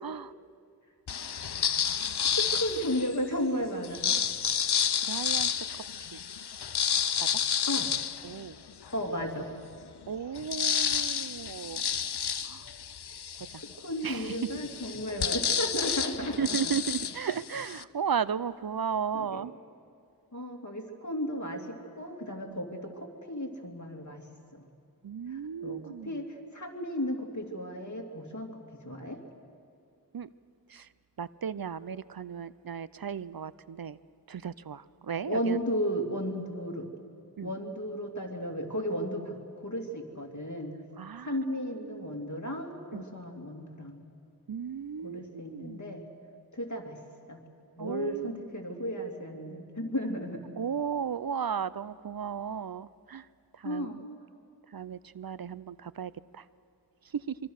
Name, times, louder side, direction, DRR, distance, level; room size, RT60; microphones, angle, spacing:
voice 1, 0.0-0.3 5.1-5.5 7.2-7.3 8.2-8.6 10.1-11.8 12.4-12.6 14.0-14.4 16.2-19.5 25.0-26.1 30.1-30.3 30.7-30.9 31.2-34.0 34.3-35.6 37.4-37.5 41.0-41.3 41.8-42.1 42.9-43.0 44.5-45.8 47.8-48.4 50.6-53.3 53.6-53.9 54.7-56.4 57.3-57.4, right 7 dB, 65° right, 17 dB, 0.6 m, -35 dB
sound 1, 1.1-3.2 3.8-9.0 9.5-9.6 9.8-17.8, left 8 dB, 85° left, 0.6 m, -30 dB
voice 2, 2.3-4.2 7.7-7.9 8.9-9.5 13.8-16.6 19.1-19.5 20.3-24.2 24.5-24.7 25.3-29.2 35.3-36.9 37.4-40.7 41.2-44.0 45.0-46.1 46.5-47.0 47.3-47.4 47.8-50.5 53.6-54.0, equal, 50° left, 2 dB, 2.8 m, -34 dB
25.0 x 24.0 x 6.5 m, 2.3 s
wide cardioid pair, 45°, 38 cm